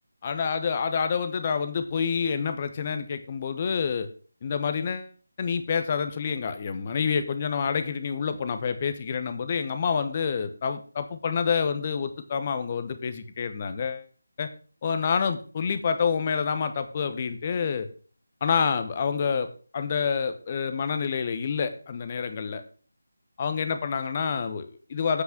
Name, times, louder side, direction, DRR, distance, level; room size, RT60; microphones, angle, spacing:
voice 1, 0.2-4.1 4.4-5.1 5.4-14.1 14.4-14.5 14.8-17.9 18.4-19.5 19.7-22.6 23.4-25.2, left 6 dB, 30° left, 9 dB, 1.0 m, -28 dB
8.1 x 5.8 x 6.0 m, 0.40 s
figure-of-eight pair, 160°, 0 cm